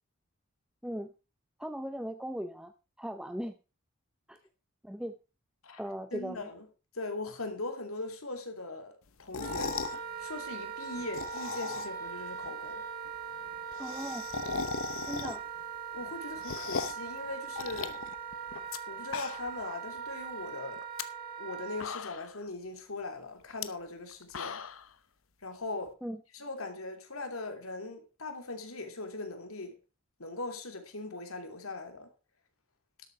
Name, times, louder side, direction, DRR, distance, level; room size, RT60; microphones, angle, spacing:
voice 1, 1.6-2.7 3.0-3.5 4.3-4.4 4.8-5.1 5.8-6.5 13.8-14.3 15.1-15.4 26.0-26.2, equal, 5° right, 0.6 m, -38 dB
voice 2, 6.1-6.7 6.9-9.8 10.2-12.8 15.9-18.0 18.9-20.8 21.4-24.6 25.4-25.9 26.3-29.7 30.2-32.1, left 2 dB, 90° left, 3.0 m, -40 dB
sound 1, 9.2-10.0 11.0-12.1 12.4-12.5 12.7-12.8 13.1-13.2 13.4-15.6 16.0-17.1 17.6-18.8 19.0-19.6 20.0-20.1 20.8-21.0 21.5-21.6 21.8-22.4 23.5-23.7 24.1-24.9, left 5 dB, 75° left, 0.9 m, -37 dB
Wind instrument woodwind instrument, 9.4-21.9, right 6 dB, 45° right, 2.2 m, -40 dB
12.0 x 8.4 x 4.5 m
head